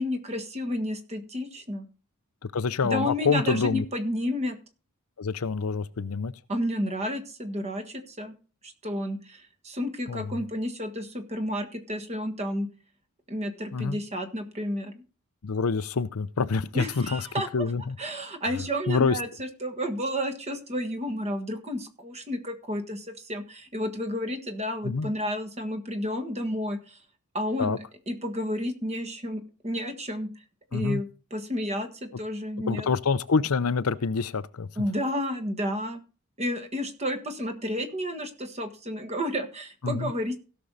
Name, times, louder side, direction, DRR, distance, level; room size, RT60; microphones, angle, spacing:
voice 1, 0.0-1.9 2.8-4.6 6.5-8.3 8.6-12.7 13.3-15.0 16.7-17.7 18.0-27.0 27.3-27.8 28.1-30.4 30.7-32.9 34.7-36.0 36.4-40.4, equal, 30° right, 1.5 m, -31 dB
voice 2, 2.5-3.8 5.2-6.3 10.1-10.3 13.7-14.0 15.4-17.2 17.5-18.0 18.9-19.2 24.8-25.1 27.6-27.8 30.7-31.0 32.7-34.7 39.8-40.1, left 4 dB, 70° left, 0.6 m, -26 dB
16.5 x 6.2 x 4.0 m
head